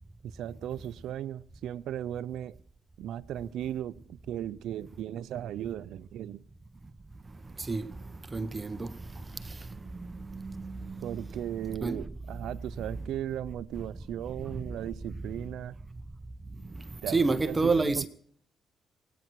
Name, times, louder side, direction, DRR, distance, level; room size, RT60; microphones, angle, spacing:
voice 1, 0.2-2.6 3.0-6.4 11.0-15.8 17.0-18.1, right 11 dB, 80° right, 0.5 m, -37 dB
voice 2, 8.3-8.9 10.3-11.1 11.8-12.0 17.1-18.1, right 3 dB, 25° right, 0.8 m, -28 dB
24.5 x 9.2 x 4.7 m
cardioid pair, 90°, 0 cm